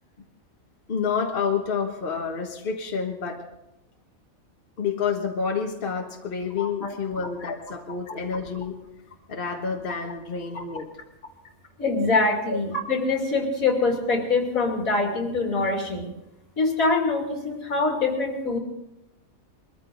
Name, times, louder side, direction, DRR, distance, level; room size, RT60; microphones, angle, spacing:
voice 1, 0.9-3.4 4.8-8.7 9.3-10.9 12.5-12.6, left 5 dB, 40° left, 2 dB, 1.5 m, -28 dB
voice 2, 6.6-6.9 11.8-16.1 16.6-18.6, left 3 dB, 80° left, 1 dB, 3.2 m, -24 dB
22.0 x 14.0 x 4.0 m, 0.92 s
omnidirectional pair, 1.5 m